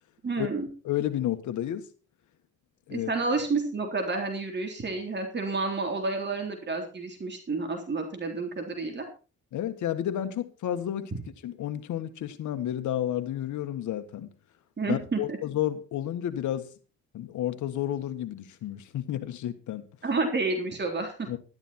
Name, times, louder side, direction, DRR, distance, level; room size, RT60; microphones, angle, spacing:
voice 1, 0.2-0.7 2.9-9.1 14.8-15.4 20.0-21.1, right 3 dB, 35° right, 3.6 m, -30 dB
voice 2, 0.8-1.8 2.9-3.1 9.5-11.1 11.4-14.3 14.9-16.7 17.1-19.8 21.3-21.4, left 11 dB, 75° left, 1.6 m, -31 dB
12.5 x 12.0 x 4.4 m
cardioid pair, 90°, 30 cm